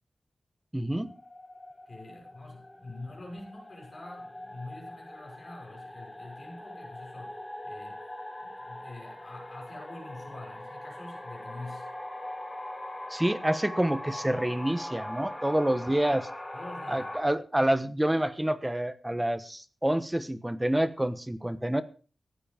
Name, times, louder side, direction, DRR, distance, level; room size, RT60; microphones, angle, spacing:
voice 1, 0.7-1.1 13.1-16.3 16.9-21.8, right 1 dB, 10° right, 11 dB, 1.2 m, -28 dB
sound 1, 0.9-17.2, left 1 dB, 20° left, 3.1 m, -42 dB
voice 2, 1.9-8.0 8.4-11.9 16.5-17.1, left 2 dB, 40° left, 0 dB, 6.3 m, -46 dB
15.5 x 10.0 x 5.1 m, 0.39 s
wide cardioid pair, 110°, 0 cm